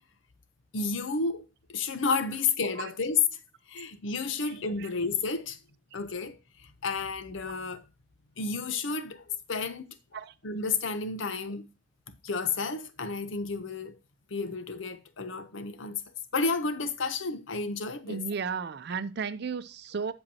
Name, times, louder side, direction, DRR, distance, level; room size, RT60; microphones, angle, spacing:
voice 1, 0.7-1.4 1.7-3.2 3.7-5.6 5.9-6.4 6.8-7.8 8.4-9.8 10.4-11.7 12.2-14.0 14.3-16.0 16.3-18.2, left 4 dB, 75° left, 0.8 m, -31 dB
voice 2, 18.1-20.1, right 5 dB, 55° right, 0.5 m, -34 dB
7.8 x 7.2 x 2.8 m
head